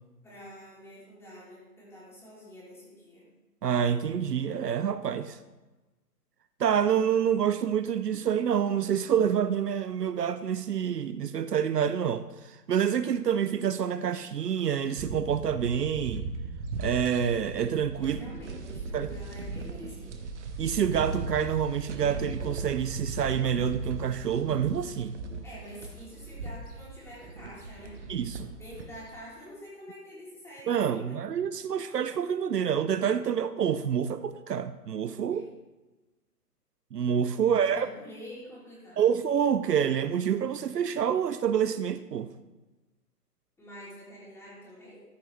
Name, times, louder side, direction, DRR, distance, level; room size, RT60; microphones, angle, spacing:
voice 1, 0.2-3.3 18.0-20.1 25.4-28.0 28.6-31.2 35.3-35.4 37.4-39.0 43.6-45.0, equal, 5° left, 3.1 m, -47 dB
voice 2, 3.6-5.4 6.6-16.3 16.8-18.2 18.9-19.1 20.6-25.2 28.1-28.5 30.7-35.5 36.9-37.9 39.0-42.3, right 8 dB, 75° right, 0.6 m, -27 dB
sound 1, 15.0-29.2, right 3 dB, 45° right, 1.1 m, -38 dB
14.0 x 6.0 x 3.2 m
figure-of-eight pair, 125°, 48 cm